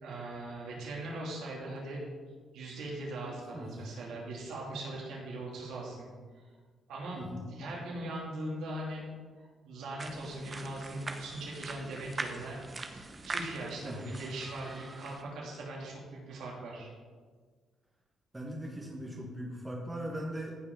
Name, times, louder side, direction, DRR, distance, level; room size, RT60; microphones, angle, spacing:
voice 1, 0.0-2.0 2.5-6.1 6.9-9.0 9.6-12.6 12.9-16.0 16.3-16.9 20.1-20.2, right 2 dB, 80° right, -4 dB, 2.9 m, -40 dB
voice 2, 7.2-7.5 13.8-14.0 18.3-20.5, equal, 15° right, -2 dB, 1.6 m, -39 dB
sound 1, 10.0-15.2, right 3 dB, 30° right, 1.0 m, -42 dB
15.0 x 5.6 x 4.0 m, 1.5 s
cardioid pair, 90°, 0 cm